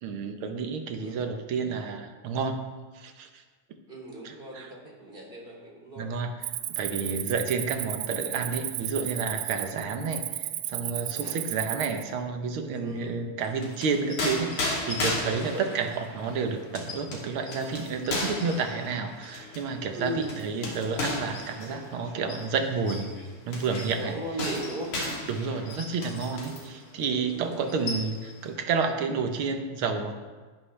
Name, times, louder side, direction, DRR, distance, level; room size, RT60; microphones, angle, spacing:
voice 1, 0.0-2.6 2.9-3.4 4.2-4.7 6.0-6.3 6.7-23.1 23.5-24.2 25.2-30.1, right 5 dB, 60° right, 5 dB, 1.5 m, -30 dB
voice 2, 3.9-6.1 7.0-7.2 11.0-11.4 12.8-13.2 15.2-15.8 19.9-20.3 21.6-21.8 23.9-24.9 26.4-26.6 27.0-27.8, right 1 dB, 15° right, -2 dB, 2.8 m, -38 dB
Cricket, 6.4-12.0, right 15 dB, 80° right, 1.9 m, -34 dB
sound 1, 13.4-26.7 27.0-27.2 27.5-28.4, left 2 dB, 70° left, 4.3 m, -35 dB
20.0 x 10.5 x 3.4 m, 1.4 s
omnidirectional pair, 3.5 m